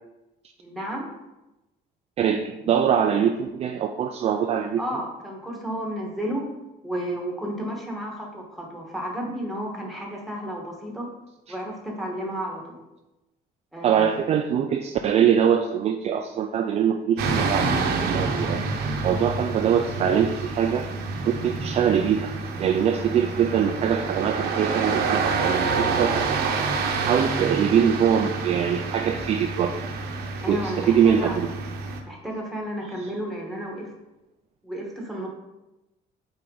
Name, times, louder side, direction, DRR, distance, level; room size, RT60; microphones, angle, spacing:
voice 1, 0.6-1.1 4.8-6.5 6.8-11.1 11.5-12.8 13.7-14.2 30.4-31.4 32.0-33.9 34.6-35.3, equal, ahead, -1 dB, 1.3 m, -32 dB
voice 2, 2.2-4.8 13.8-20.9 21.2-22.3 22.6-26.6 27.0-29.8 30.5-31.5, right 8 dB, 40° right, 5 dB, 0.4 m, -23 dB
sound 1, 17.2-32.0, right 4 dB, 75° right, 0.9 m, -28 dB
7.7 x 4.4 x 3.9 m, 0.98 s
cardioid pair, 170°, 17 cm